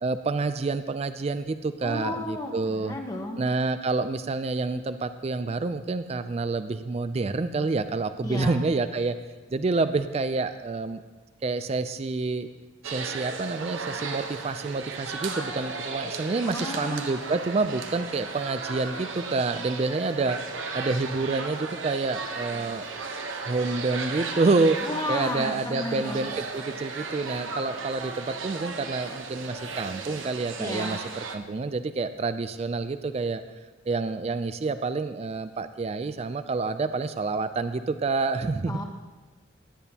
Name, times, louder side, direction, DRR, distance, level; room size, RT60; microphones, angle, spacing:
voice 1, 0.0-3.0 3.4-9.2 9.5-11.0 11.4-12.5 12.8-20.4 20.7-22.9 23.5-24.8 25.1-31.0 31.3-33.4 33.9-38.8, right 3 dB, 30° right, 11 dB, 0.3 m, -28 dB
voice 2, 1.8-3.4 8.2-8.6 16.4-17.1 24.8-26.2 30.6-31.0 38.7-38.8, left 1 dB, 20° left, 1 dB, 1.0 m, -33 dB
sound 1, 12.8-31.4, right 4 dB, 80° right, 1.0 m, -35 dB
17.5 x 10.5 x 2.9 m, 1.3 s
head